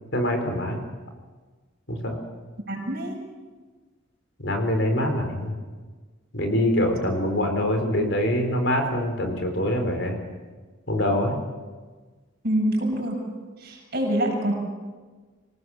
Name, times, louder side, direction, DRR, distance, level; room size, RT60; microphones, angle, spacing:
voice 1, 0.1-0.8 1.9-2.2 4.4-5.5 6.3-10.2 10.9-11.4, left 1 dB, 65° left, 4 dB, 4.5 m, -24 dB
voice 2, 2.7-3.2 12.4-13.2 13.6-14.5, right 1 dB, 50° right, 0 dB, 7.5 m, -25 dB
26.5 x 18.5 x 7.4 m, 1.4 s
head